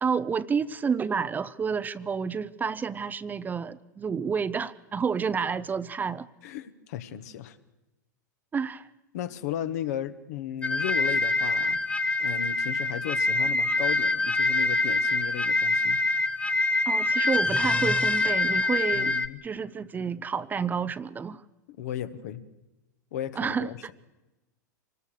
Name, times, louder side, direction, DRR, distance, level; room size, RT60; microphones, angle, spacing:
voice 1, 0.0-6.3 8.5-8.9 16.9-21.4 23.4-23.7, right 6 dB, 20° right, 0.7 m, -30 dB
voice 2, 6.4-7.6 9.1-11.8 12.2-16.0 18.9-19.4 21.8-22.4 23.1-23.8, left 11 dB, 60° left, 1.4 m, -35 dB
sound 1, 10.6-19.3, left 2 dB, 10° left, 1.0 m, -25 dB
26.0 x 19.5 x 6.6 m
hypercardioid pair, 100°, 10 cm